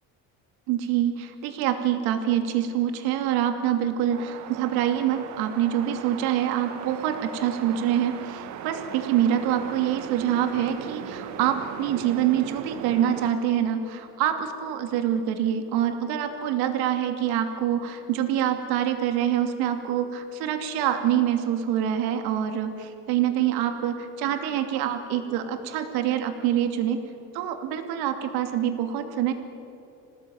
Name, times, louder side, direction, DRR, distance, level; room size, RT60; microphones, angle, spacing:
voice 1, 0.7-27.0 27.3-29.3, right 10 dB, 80° right, 6 dB, 2.6 m, -25 dB
sound 1, 4.1-13.3, right 9 dB, 50° right, 1.2 m, -38 dB
26.5 x 18.5 x 9.2 m, 2.9 s
cardioid pair, 165°, 37 cm